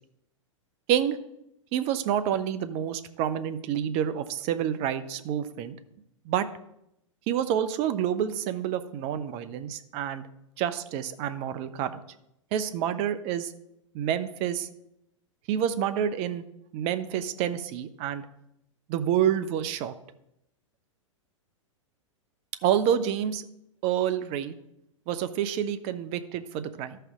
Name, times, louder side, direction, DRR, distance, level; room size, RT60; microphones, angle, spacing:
voice 1, 1.7-5.8 6.2-6.5 7.3-10.3 10.6-11.9 12.5-13.5 13.9-14.7 15.5-16.4 16.7-18.3 18.9-19.9 22.6-23.4 23.8-24.6 25.1-27.0, right 9 dB, 40° right, 12 dB, 0.7 m, -28 dB
13.5 x 5.7 x 3.6 m, 0.81 s
figure-of-eight pair, 100°, 17 cm